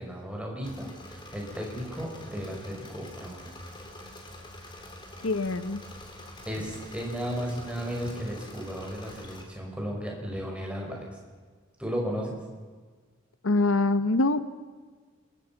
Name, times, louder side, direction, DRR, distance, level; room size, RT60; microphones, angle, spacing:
voice 1, 0.0-3.5 6.5-11.1 11.8-12.4, equal, 5° right, -1 dB, 5.6 m, -34 dB
Engine / Mechanisms, 0.6-9.4, left 1 dB, 20° left, 4.0 m, -46 dB
voice 2, 5.2-5.8 13.4-14.4, left 2 dB, 80° left, 12 dB, 1.0 m, -24 dB
27.5 x 22.5 x 5.9 m, 1.5 s
head